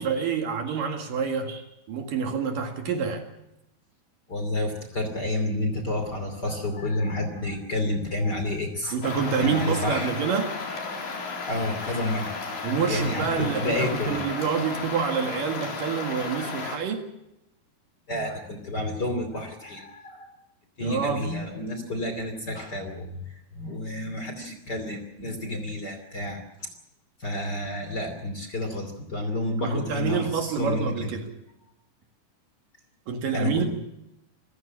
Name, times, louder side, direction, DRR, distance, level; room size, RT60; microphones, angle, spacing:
voice 1, 0.0-1.5 1.9-3.3 8.9-10.6 12.6-17.1 20.8-21.3 29.6-31.4 33.1-33.7, right 6 dB, 60° right, 4 dB, 3.4 m, -27 dB
voice 2, 4.3-9.0 9.4-10.1 11.5-12.4 12.9-14.2 14.8-15.0 18.1-20.4 20.8-26.7 27.2-31.1 33.3-33.7, left 1 dB, 30° left, 6 dB, 2.8 m, -30 dB
sound 1, 9.0-16.8, left 4 dB, 80° left, 5.8 m, -34 dB
27.5 x 15.5 x 7.4 m, 0.89 s
omnidirectional pair, 4.5 m